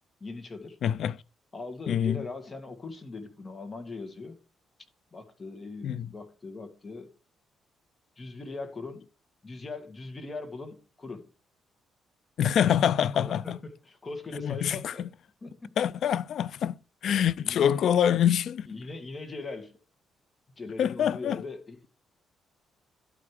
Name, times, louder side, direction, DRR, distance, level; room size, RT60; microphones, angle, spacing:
voice 1, 0.2-0.8 1.5-4.4 5.1-7.1 8.2-9.1 9.4-11.2 13.0-15.0 15.4-15.8 17.4-17.7 18.2-18.4 18.7-19.8 20.6-21.9, left 3 dB, 30° left, 2.0 m, -40 dB
voice 2, 0.8-1.2 1.9-2.3 5.8-6.1 12.4-13.6 14.4-14.9 15.8-16.7 17.0-18.7 20.8-21.4, left 9 dB, 65° left, 0.3 m, -25 dB
11.5 x 4.9 x 4.8 m
cardioid pair, 90°, 0 cm